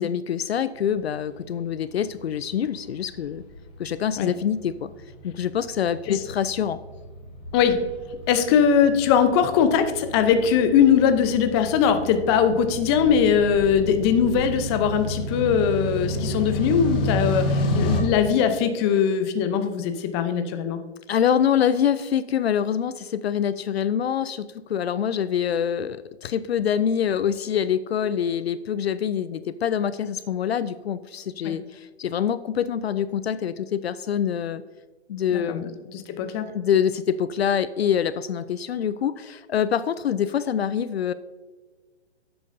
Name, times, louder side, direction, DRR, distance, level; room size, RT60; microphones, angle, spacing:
voice 1, 0.0-3.4 3.8-4.9 5.2-6.8 21.1-34.6 35.1-35.7 36.5-41.1, left 8 dB, 65° left, 15 dB, 0.5 m, -25 dB
sound 1, 1.0-18.0, equal, 10° left, 0.3 m, -31 dB
voice 2, 8.3-20.8 31.4-31.5 35.3-36.5, left 7 dB, 25° left, 9 dB, 0.8 m, -21 dB
12.0 x 8.6 x 2.7 m, 1.4 s
hypercardioid pair, 135°, 33 cm